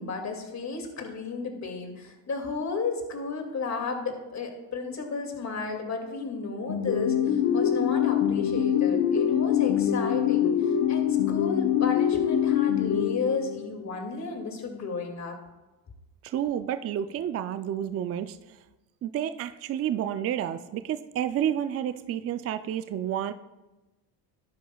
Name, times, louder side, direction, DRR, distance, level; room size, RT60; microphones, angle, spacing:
voice 1, 0.0-15.4, left 4 dB, 35° left, 3 dB, 2.3 m, -33 dB
sound 1, 6.7-13.9, left 9 dB, 50° left, 1.0 m, -24 dB
voice 2, 16.2-18.4 19.0-23.3, right 10 dB, 35° right, 11 dB, 0.4 m, -30 dB
12.0 x 10.0 x 2.3 m, 1.1 s
supercardioid pair, 85°, 48 cm